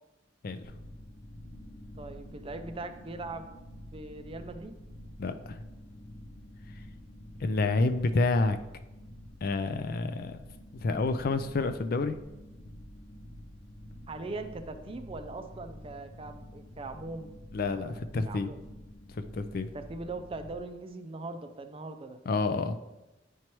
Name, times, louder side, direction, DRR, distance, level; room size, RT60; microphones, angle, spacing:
sound 1, 0.6-20.6, equal, 90° left, 0.8 m, -48 dB
voice 1, 2.0-3.5 3.9-4.7 7.4-7.6 14.1-17.3 17.6-17.9 18.3-18.6 19.7-22.2, right 3 dB, 30° right, 7 dB, 0.5 m, -40 dB
voice 2, 5.2-5.6 7.4-8.6 9.4-10.4 10.7-12.2 17.5-18.5 19.2-19.7 22.3-22.8, left 3 dB, 55° left, 9 dB, 0.4 m, -29 dB
9.6 x 4.5 x 3.0 m, 1.0 s
head